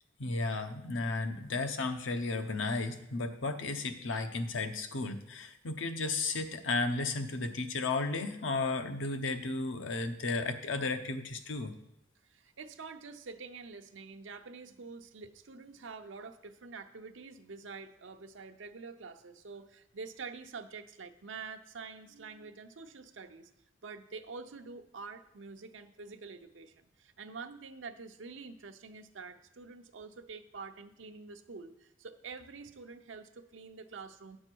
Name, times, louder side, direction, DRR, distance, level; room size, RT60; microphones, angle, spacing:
voice 1, 0.2-11.7, left 3 dB, 85° left, 8 dB, 0.8 m, -34 dB
voice 2, 12.2-23.5 23.8-34.4, right 4 dB, 75° right, 7 dB, 0.7 m, -47 dB
9.8 x 6.4 x 4.6 m, 0.83 s
head